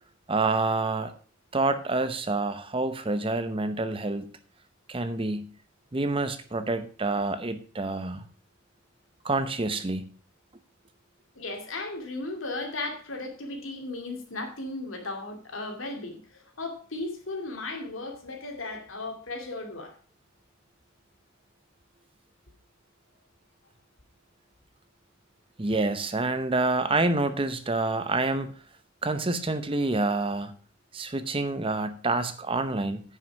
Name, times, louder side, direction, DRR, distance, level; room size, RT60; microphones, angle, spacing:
voice 1, 0.3-1.1 1.5-4.2 4.9-5.5 5.9-8.2 9.2-10.1 25.6-28.5 29.0-30.5 30.9-33.0, right 2 dB, 25° right, 11 dB, 0.7 m, -27 dB
voice 2, 11.4-19.9, left 2 dB, 75° left, 4 dB, 2.5 m, -36 dB
9.7 x 6.1 x 5.8 m, 0.40 s
head